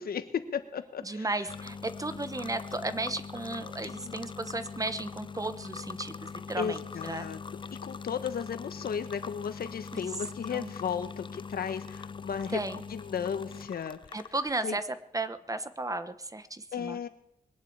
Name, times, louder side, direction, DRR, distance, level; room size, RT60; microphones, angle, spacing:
voice 1, 0.0-1.3 3.8-4.1 6.6-7.4 7.7-12.6 12.9-14.0 14.6-14.8 16.7-17.1, left 7 dB, 80° left, 10 dB, 1.3 m, -34 dB
voice 2, 1.0-7.3 9.9-10.1 10.5-10.7 12.5-12.8 14.1-14.9 15.1-17.0, right 2 dB, 20° right, 12 dB, 1.1 m, -34 dB
sound 1, 1.5-14.6, left 5 dB, 35° left, 0.5 m, -42 dB
21.0 x 7.5 x 8.8 m, 0.82 s
cardioid pair, 85°, 15 cm